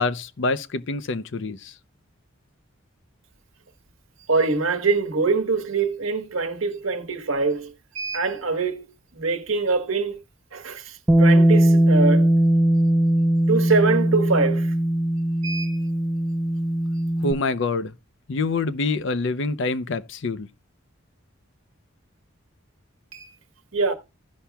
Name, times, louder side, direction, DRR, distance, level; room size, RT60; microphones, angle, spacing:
voice 1, 0.0-1.7 17.2-17.9 18.3-20.5, left 3 dB, 60° left, 0.6 m, -26 dB
voice 2, 4.3-8.9 9.1-10.2 10.5-12.3 13.5-14.7 15.4-15.9 23.1-23.4 23.7-23.9, right 4 dB, 85° right, 1.1 m, -24 dB
Bass guitar, 11.1-17.3, right 1 dB, 10° right, 0.5 m, -19 dB
16.0 x 5.6 x 2.2 m
head